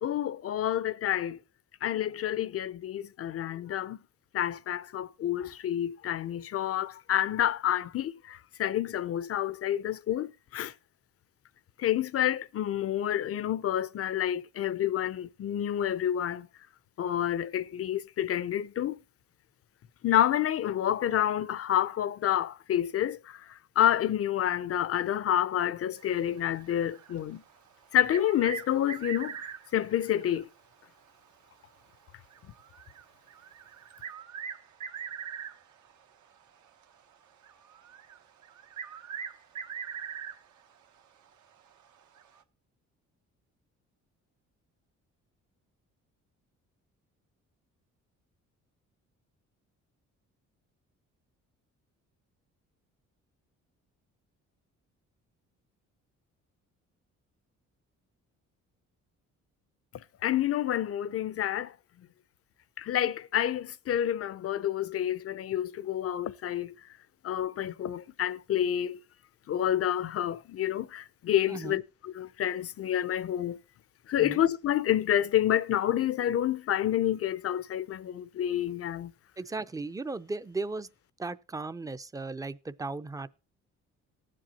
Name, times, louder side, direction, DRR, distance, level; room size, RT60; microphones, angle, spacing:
voice 1, 0.0-1.4 1.8-4.0 4.3-10.7 11.8-16.5 17.0-19.0 20.0-27.4 27.9-30.5 60.2-61.7 62.8-66.7 67.2-69.0 69.5-73.6 74.1-79.1, left 11 dB, 50° left, 0.6 m, -29 dB
sound 1, 26.0-27.5 27.9-30.6 30.8-30.9 31.6-31.7 32.3-35.9 36.6-36.8 37.4-40.6 41.0-41.1 42.1-42.4, right 7 dB, 75° right, 1.3 m, -42 dB
voice 2, 71.5-71.8 74.2-74.4 79.4-80.9 81.2-83.3, right 3 dB, 10° right, 0.5 m, -36 dB
19.5 x 7.6 x 2.9 m
cardioid pair, 90°, 30 cm